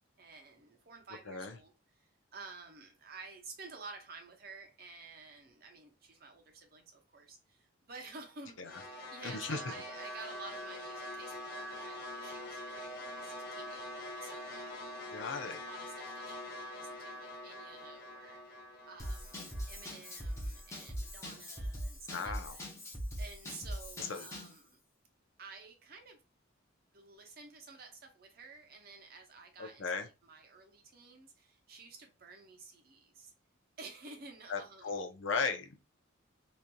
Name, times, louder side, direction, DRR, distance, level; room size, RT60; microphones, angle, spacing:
voice 1, 0.2-8.8 9.1-15.0 15.4-18.6 18.9-22.7 23.2-24.8 25.4-26.2 26.9-33.3 33.8-35.1, right 4 dB, 50° right, 0.7 m, -52 dB
voice 2, 1.3-1.6 8.6-8.7 9.2-9.7 15.1-15.6 22.1-22.6 24.0-24.2 29.6-30.1 34.5-35.8, left 4 dB, 70° left, 0.5 m, -36 dB
sound 1, 8.6-20.9, left 1 dB, 55° left, 0.9 m, -45 dB
Drum kit / Drum, 19.0-24.6, equal, 15° left, 0.7 m, -41 dB
2.9 x 2.5 x 2.2 m
head